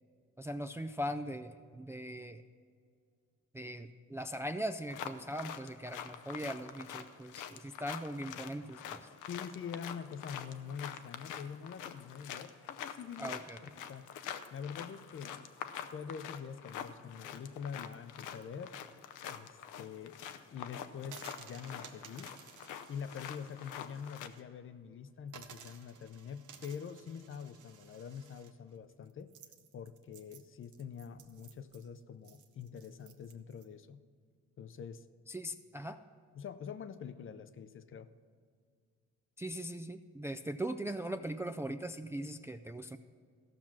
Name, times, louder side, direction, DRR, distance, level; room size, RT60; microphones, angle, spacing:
voice 1, 0.4-2.4 3.5-9.0 13.2-13.6 35.3-36.0 39.4-43.0, equal, 10° right, 7 dB, 0.3 m, -40 dB
sound 1, 4.9-24.3, left 9 dB, 90° left, 0.7 m, -46 dB
voice 2, 9.3-13.3 13.6-14.1 14.5-15.5 15.8-18.7 19.3-20.2 20.5-22.3 22.9-29.3 29.7-34.0 34.6-35.0 36.3-38.1, left 7 dB, 45° left, 12 dB, 0.6 m, -45 dB
sound 2, 21.0-24.4 24.8-24.9 25.3-33.6, right 7 dB, 80° right, 1.0 m, -56 dB
14.5 x 6.0 x 5.9 m, 2.1 s
cardioid pair, 90°, 30 cm